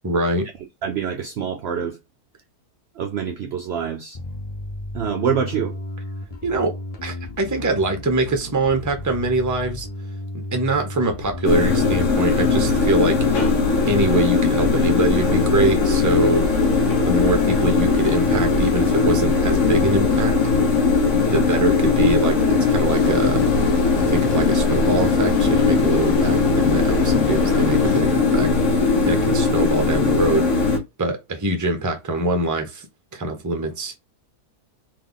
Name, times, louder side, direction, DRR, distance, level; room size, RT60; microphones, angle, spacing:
voice 1, 0.0-0.5 6.4-9.9 10.5-13.2 13.9-16.5 17.1-20.3 21.2-23.4 24.0-28.5 29.1-30.7 31.0-32.9 33.1-33.9, right 2 dB, 20° right, 0.6 m, -23 dB
voice 2, 0.8-2.0 3.0-4.2 4.9-5.8, right 7 dB, 75° right, 0.5 m, -25 dB
Bass guitar, 4.1-13.7, left 2 dB, 40° left, 0.5 m, -34 dB
sound 1, 11.4-30.8, left 4 dB, 55° left, 1.3 m, -19 dB
sound 2, 22.9-28.0, left 8 dB, 70° left, 1.1 m, -31 dB
3.5 x 2.8 x 3.9 m
omnidirectional pair, 1.6 m